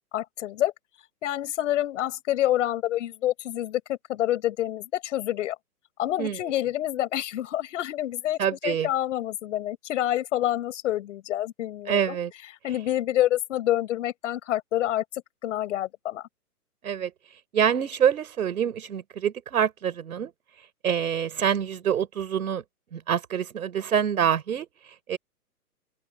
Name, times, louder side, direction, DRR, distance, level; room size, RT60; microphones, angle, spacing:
voice 1, 0.1-0.7 1.2-5.6 6.0-12.2 12.6-15.0 15.4-16.2, left 13 dB, 50° left, 6.6 m, -27 dB
voice 2, 8.4-8.9 11.9-12.3 16.8-17.1 17.5-20.3 20.8-22.6 22.9-25.2, right 8 dB, 65° right, 5.3 m, -26 dB
open air
hypercardioid pair, 130°, 46 cm